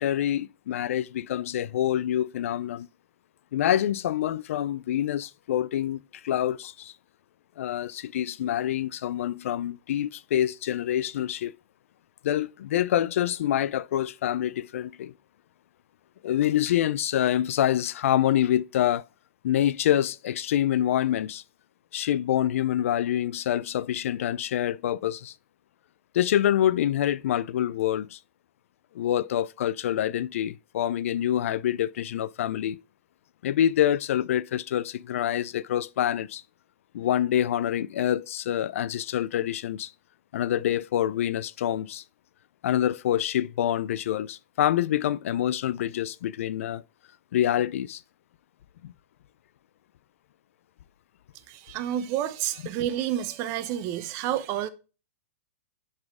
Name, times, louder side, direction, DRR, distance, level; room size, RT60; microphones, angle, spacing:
voice 1, 0.0-2.9 3.5-6.9 7.6-11.5 12.2-15.1 16.2-19.0 19.4-21.4 21.9-25.3 26.1-28.2 28.9-32.8 33.4-36.4 36.9-39.9 40.3-42.0 42.6-46.8 47.3-48.0 48.8-48.9, left 11 dB, 70° left, 0.3 m, -26 dB
voice 2, 51.5-54.7, right 11 dB, 40° right, 0.8 m, -29 dB
10.5 x 4.2 x 3.6 m
hypercardioid pair, 135°, 8 cm